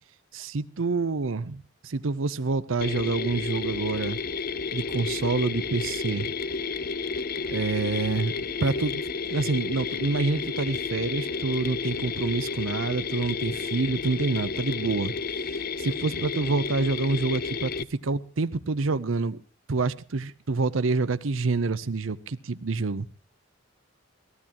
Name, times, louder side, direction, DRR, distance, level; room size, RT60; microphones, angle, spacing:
voice 1, 0.3-4.2 4.7-6.3 7.5-8.3 8.6-9.0 9.3-15.1 15.8-19.4 19.7-23.1, right 3 dB, 80° right, 0.7 m, -27 dB
Mechanisms, 2.8-17.8, left 5 dB, 50° left, 0.6 m, -31 dB
22.5 x 16.0 x 3.0 m
head